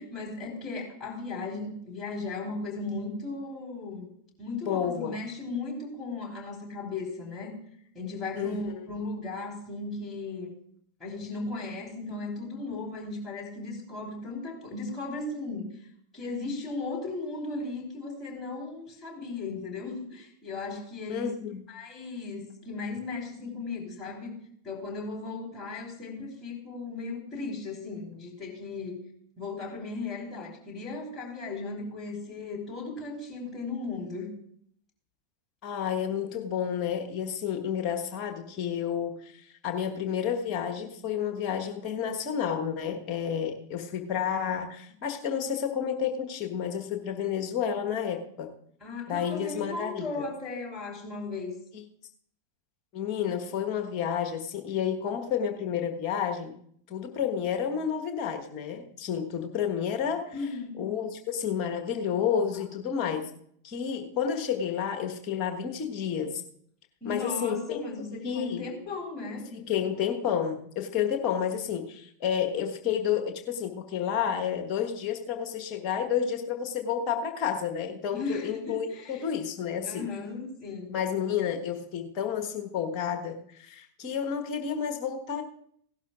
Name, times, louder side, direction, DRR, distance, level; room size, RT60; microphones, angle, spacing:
voice 1, 0.0-4.1 4.4-7.5 7.9-10.5 11.0-15.7 16.1-21.3 21.7-24.3 24.6-29.0 29.4-34.3 48.8-51.5 60.3-60.9 67.0-69.4 78.1-79.3 79.8-81.0, left 3 dB, 15° left, -1 dB, 4.2 m, -36 dB
voice 2, 4.7-5.2 8.4-8.9 21.1-21.6 35.6-48.5 49.1-50.2 52.9-56.5 56.9-60.3 60.8-63.3 63.6-66.4 67.0-67.8 68.2-68.7 69.5-80.1 80.9-85.4, left 8 dB, 35° left, 4 dB, 1.4 m, -30 dB
17.0 x 11.5 x 2.5 m, 0.66 s
figure-of-eight pair, 90°, 0 cm